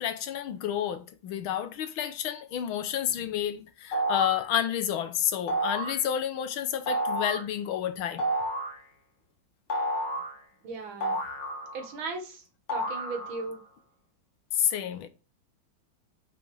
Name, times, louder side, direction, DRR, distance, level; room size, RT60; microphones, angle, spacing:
voice 1, 0.0-8.3 14.5-15.1, left 10 dB, 80° left, 1.7 m, -30 dB
sound 1, 3.9-4.5 5.5-6.0 6.9-7.5 8.2-8.8 9.7-10.4 11.0-12.0 12.7-13.5, right 1 dB, 60° left, 2.4 m, -30 dB
voice 2, 10.6-11.2 11.7-12.4 12.7-13.6, right 3 dB, 70° right, 2.4 m, -37 dB
5.9 x 5.3 x 6.3 m
omnidirectional pair, 2.3 m